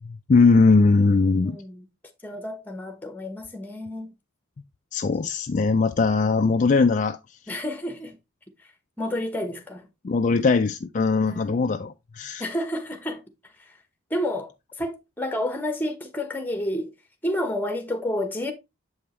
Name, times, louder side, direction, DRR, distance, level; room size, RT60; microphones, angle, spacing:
voice 1, 0.0-1.6 4.9-7.4 10.0-12.4, left 4 dB, 35° left, 0.3 m, -20 dB
voice 2, 1.4-1.8 2.2-4.1 7.5-8.2 9.0-9.9 11.2-11.6 12.4-13.2 13.6-13.8 14.1-14.5 14.8-16.9 17.2-18.5, left 1 dB, 10° left, 1.0 m, -30 dB
7.8 x 5.4 x 3.1 m
head